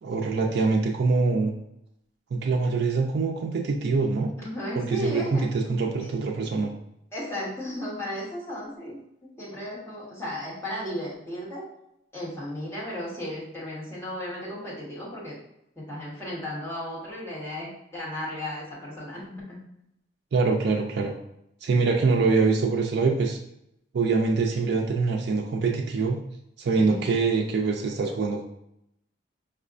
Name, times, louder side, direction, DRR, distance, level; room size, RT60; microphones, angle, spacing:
voice 1, 0.0-1.5 2.3-4.3 4.8-6.7 20.3-21.1 21.6-23.4 23.9-26.2 26.6-28.4, right 4 dB, 55° right, 1 dB, 0.3 m, -24 dB
voice 2, 4.4-5.5 6.0-6.1 7.1-9.0 9.4-11.6 12.1-15.4 15.8-19.6 26.7-27.0, left 1 dB, 15° left, -7 dB, 1.1 m, -35 dB
4.8 x 2.1 x 2.4 m, 0.79 s
head